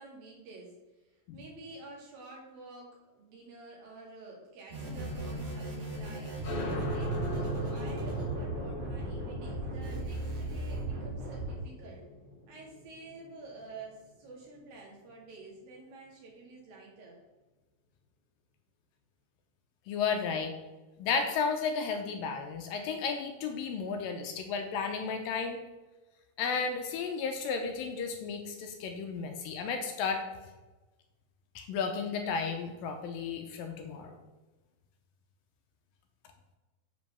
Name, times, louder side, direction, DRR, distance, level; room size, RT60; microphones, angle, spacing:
voice 1, 0.0-6.6 6.9-12.0 12.5-17.2, right 3 dB, 65° right, -2 dB, 4.0 m, -49 dB
sound 1, 4.7-11.5, right 2 dB, 50° right, 3.2 m, -36 dB
sound 2, 6.4-13.7, left 1 dB, 50° left, 1.6 m, -39 dB
voice 2, 19.9-20.6 21.0-25.6 26.4-30.3 31.6-34.2, left 5 dB, 75° left, 5 dB, 2.3 m, -33 dB
7.9 x 5.0 x 7.0 m, 1.2 s
omnidirectional pair, 4.4 m